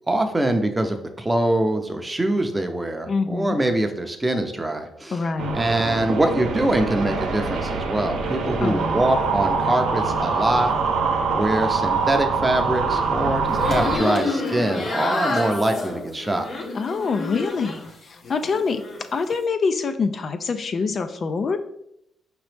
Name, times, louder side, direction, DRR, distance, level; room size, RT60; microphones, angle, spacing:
voice 1, 0.1-5.2 5.5-10.7 11.3-16.5, right 1 dB, 15° right, 6 dB, 0.6 m, -23 dB
voice 2, 3.1-3.6 5.1-5.6 8.6-9.0 16.7-18.8 19.1-21.6, left 4 dB, 50° left, 8 dB, 0.3 m, -25 dB
sound 1, 5.4-14.0, right 4 dB, 80° right, 0.7 m, -24 dB
sound 2, 13.5-17.9 18.2-19.0, left 2 dB, 65° left, 0.9 m, -28 dB
5.1 x 3.0 x 3.3 m, 0.77 s
cardioid pair, 85°, 0 cm